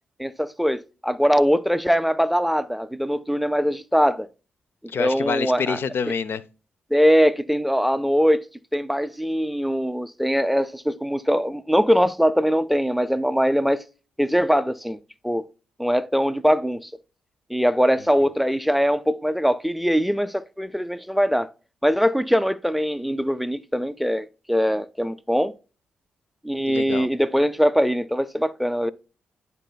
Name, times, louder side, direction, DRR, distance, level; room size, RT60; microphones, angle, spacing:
voice 1, 0.2-4.3 5.0-5.8 6.9-8.4 8.7-13.8 14.2-15.0 15.2-15.4 15.8-16.9 17.5-21.5 21.8-25.5 26.4-28.9, equal, ahead, 0.4 m, -22 dB
voice 2, 4.9-6.4 26.7-27.1, left 6 dB, 55° left, 0.5 m, -27 dB
11.0 x 4.1 x 2.2 m
hypercardioid pair, 45°, 4 cm